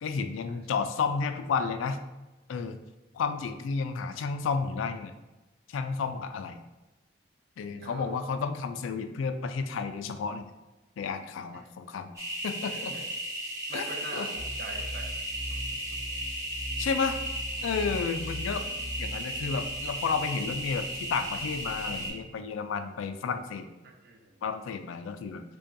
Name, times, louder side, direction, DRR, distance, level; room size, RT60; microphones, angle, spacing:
voice 1, 0.0-2.0 2.5-2.8 3.1-5.1 5.7-6.6 7.6-10.5 11.0-12.1 12.4-12.9 13.7-13.9 14.1-14.3 16.8-17.2 17.6-18.7 19.0-23.7 24.4-25.4, left 5 dB, 80° left, 8 dB, 0.3 m, -31 dB
voice 2, 7.8-8.2 11.5-11.7 12.6-13.1 13.7-15.1 15.5-15.6 24.0-24.4, right 2 dB, 50° right, 1 dB, 0.5 m, -43 dB
sound 1, 12.1-22.1, right 1 dB, 15° right, 1.0 m, -35 dB
sound 2, 14.3-22.2, equal, 70° right, 1.2 m, -41 dB
5.1 x 2.3 x 2.6 m, 1.1 s
head